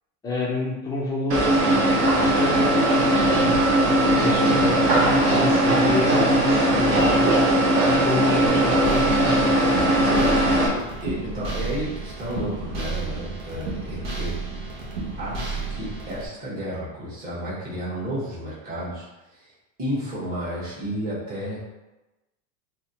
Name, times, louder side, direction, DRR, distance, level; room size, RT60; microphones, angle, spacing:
voice 1, 0.2-1.6 2.2-3.6 4.1-7.5 7.9-9.6, left 2 dB, 10° left, -4 dB, 0.4 m, -29 dB
sound 1, 1.3-10.7, right 1 dB, 50° right, 0.9 m, -19 dB
sound 2, 8.5-16.3, right 3 dB, 90° right, 1.1 m, -32 dB
voice 2, 10.0-14.3 15.2-19.5 19.8-21.6, equal, 20° right, -8 dB, 1.3 m, -32 dB
3.5 x 2.7 x 2.8 m, 1.0 s
supercardioid pair, 155°, 39 cm